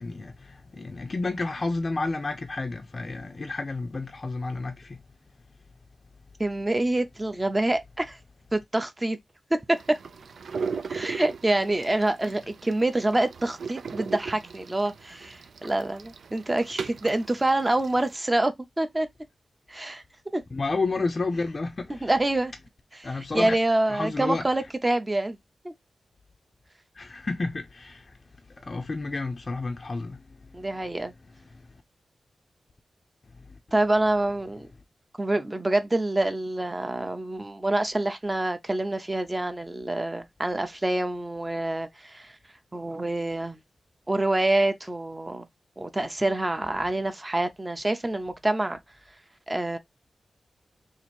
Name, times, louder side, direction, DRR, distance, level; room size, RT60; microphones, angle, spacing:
voice 1, 0.0-5.0 20.5-22.1 23.0-23.5 23.9-24.4 27.0-28.2 28.6-30.2, left 3 dB, 40° left, 0.5 m, -31 dB
voice 2, 6.4-8.2 8.5-9.2 9.7-10.0 10.9-19.1 19.7-20.0 20.3-20.4 21.9-22.5 23.0-25.4 25.6-25.7 30.5-31.1 33.7-34.7 35.2-42.4 42.7-43.6 44.1-45.5 45.8-48.8 49.5-49.8, right 2 dB, 20° right, 0.6 m, -26 dB
sound 1, 9.7-18.2, right 5 dB, 80° right, 0.3 m, -38 dB
2.9 x 2.5 x 4.2 m
wide cardioid pair, 90°, 0 cm